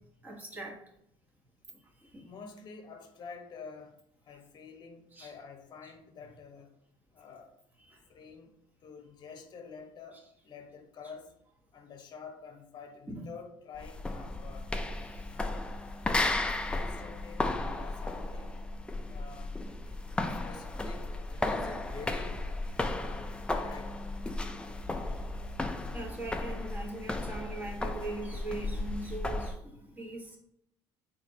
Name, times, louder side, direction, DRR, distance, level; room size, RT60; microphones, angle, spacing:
voice 1, 0.2-0.8 2.1-2.2 5.1-5.3 7.8-8.0 13.1-13.3 25.9-30.4, right 2 dB, 15° right, -1 dB, 1.2 m, -40 dB
voice 2, 2.2-6.7 7.1-7.5 8.1-8.5 8.8-11.3 11.7-14.7 15.2-15.7 16.4-18.6 19.1-19.6 19.9-20.0 20.3-22.4 22.9-24.5, left 5 dB, 45° left, 5 dB, 0.8 m, -49 dB
sound 1, 13.8-29.6, left 2 dB, 10° left, 0.4 m, -34 dB
4.1 x 2.8 x 4.0 m, 0.74 s
supercardioid pair, 100°, 10 cm